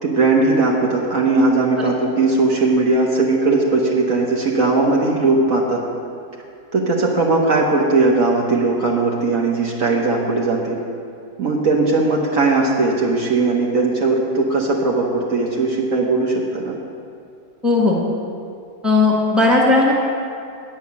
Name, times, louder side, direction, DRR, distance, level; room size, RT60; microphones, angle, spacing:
voice 1, 0.0-5.8 6.7-10.8 11.4-16.7, right 3 dB, 55° right, -2 dB, 1.4 m, -18 dB
voice 2, 17.6-18.0 18.8-19.9, left 3 dB, ahead, -3 dB, 1.5 m, -15 dB
9.7 x 5.7 x 8.4 m, 2.4 s
omnidirectional pair, 1.8 m